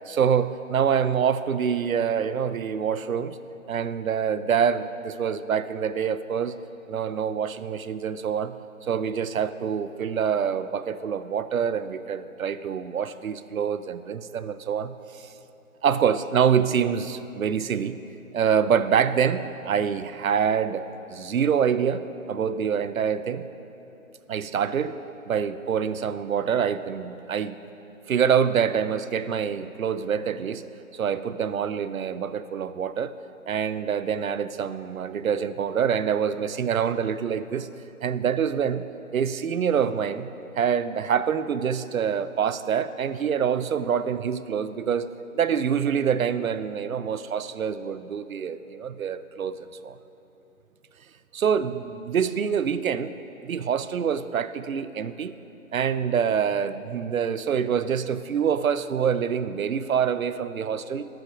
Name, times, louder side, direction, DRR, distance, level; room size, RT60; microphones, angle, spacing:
voice 1, 0.1-3.4 3.7-6.6 6.9-8.6 8.8-15.0 15.8-18.0 18.3-23.5 24.3-25.0 25.3-27.6 28.1-30.6 30.9-33.1 33.5-37.7 38.0-38.9 39.1-49.5 49.8-50.0 51.3-53.1 53.4-55.4 55.7-61.1, right 7 dB, 70° right, 13 dB, 0.6 m, -26 dB
13.5 x 5.9 x 4.9 m, 3.0 s
figure-of-eight pair, 170°, 43 cm